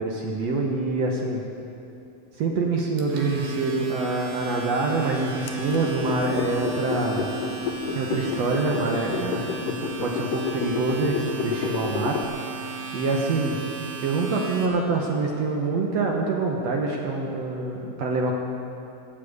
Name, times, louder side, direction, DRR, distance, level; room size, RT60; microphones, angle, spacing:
voice 1, 0.0-1.4 2.4-7.3 7.9-12.2 12.5-13.6 14.0-18.4, right 3 dB, 65° right, 0 dB, 1.9 m, -26 dB
Domestic sounds home sounds, 2.8-14.7, right 4 dB, 85° right, 3.2 m, -35 dB
sound 1, 5.5-12.3, left 7 dB, 80° left, 2.3 m, -31 dB
17.0 x 7.5 x 8.1 m, 2.8 s
omnidirectional pair, 3.9 m